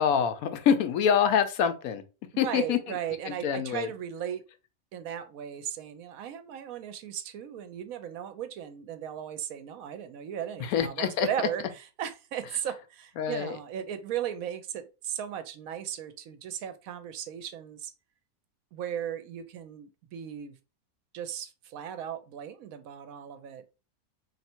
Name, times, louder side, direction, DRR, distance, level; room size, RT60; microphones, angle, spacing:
voice 1, 0.0-2.0 2.4-2.8 3.4-3.9 10.7-11.3 13.2-13.6, left 8 dB, 75° left, 1.0 m, -25 dB
voice 2, 2.3-4.4 4.9-17.9 18.7-20.5 21.1-23.7, right 9 dB, 75° right, 1.0 m, -36 dB
3.2 x 2.7 x 4.3 m
omnidirectional pair, 1.6 m